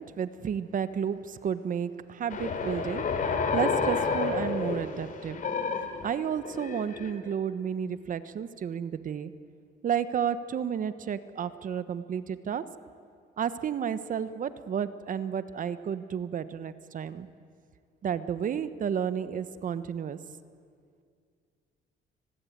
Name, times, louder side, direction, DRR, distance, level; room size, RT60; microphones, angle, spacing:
voice 1, 0.0-3.0 3.5-5.4 6.0-9.3 9.8-12.6 13.4-17.3 18.0-20.2, right 8 dB, 50° right, 13 dB, 1.2 m, -32 dB
sound 1, 2.3-7.3, left 5 dB, 50° left, 3.1 m, -30 dB
29.5 x 20.5 x 9.5 m, 2.3 s
cardioid pair, 125°, 18 cm